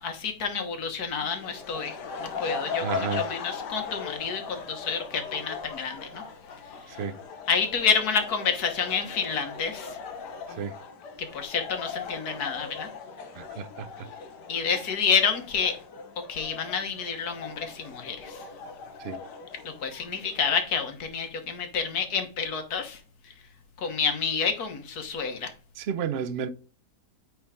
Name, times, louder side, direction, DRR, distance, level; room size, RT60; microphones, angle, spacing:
voice 1, 0.0-6.2 7.5-10.0 11.3-12.9 14.5-15.8 16.3-18.4 19.6-23.0 23.8-25.5, left 6 dB, 70° left, 1.8 m, -29 dB
sound 1, 1.2-20.6, left 5 dB, 85° left, 1.6 m, -39 dB
voice 2, 2.8-3.2 7.0-7.2 10.6-10.7 13.4-14.1 19.0-19.2 25.8-26.5, right 6 dB, 60° right, 0.6 m, -31 dB
9.2 x 4.0 x 3.7 m
omnidirectional pair, 1.8 m